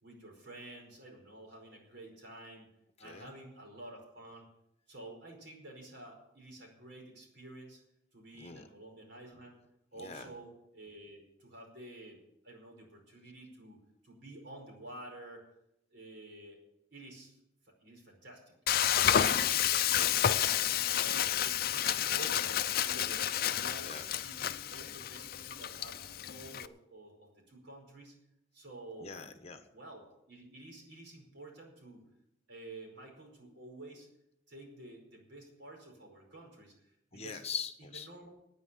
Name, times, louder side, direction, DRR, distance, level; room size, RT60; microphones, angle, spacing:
voice 1, 0.0-2.7 3.0-4.5 4.9-7.8 8.1-9.6 9.9-12.2 12.4-13.8 14.0-15.4 15.9-16.6 16.9-17.4 17.8-18.5 18.9-23.3 23.6-26.0 26.3-28.1 28.5-29.2 29.7-32.0 32.5-34.1 34.5-36.7 37.1-37.4 38.1-38.3, right 1 dB, 65° right, 1 dB, 5.0 m, -50 dB
voice 2, 3.0-3.3 8.4-8.7 10.0-10.3 19.2-19.5 23.8-24.0 29.0-29.6 37.1-38.1, left 6 dB, 35° left, 8 dB, 1.0 m, -42 dB
Frying (food), 18.7-26.7, left 10 dB, 50° left, 0.5 m, -30 dB
10.0 x 9.3 x 9.2 m, 0.82 s
head